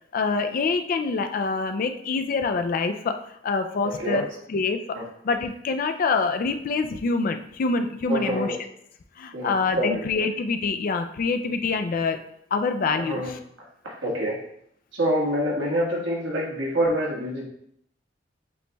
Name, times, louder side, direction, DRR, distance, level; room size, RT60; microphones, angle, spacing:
voice 1, 0.1-5.0 5.2-8.6 9.2-12.2 12.5-13.4, left 4 dB, 50° left, 7 dB, 0.4 m, -26 dB
voice 2, 3.8-4.2 4.9-5.0 8.1-8.6 9.3-10.0 13.0-13.3 13.8-14.4 14.9-17.5, equal, 85° right, -3 dB, 1.5 m, -26 dB
7.7 x 3.1 x 2.2 m, 0.71 s
head